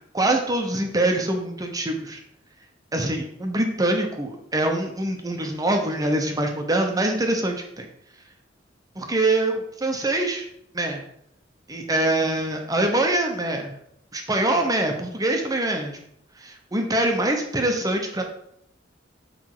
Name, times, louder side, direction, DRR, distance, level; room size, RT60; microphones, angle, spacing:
voice 1, 0.1-2.2 2.9-7.9 8.9-10.5 10.7-11.0 11.7-13.8 14.1-16.0 16.4-18.2, right 1 dB, 20° right, 3 dB, 1.0 m, -24 dB
8.2 x 3.5 x 4.9 m, 0.72 s
head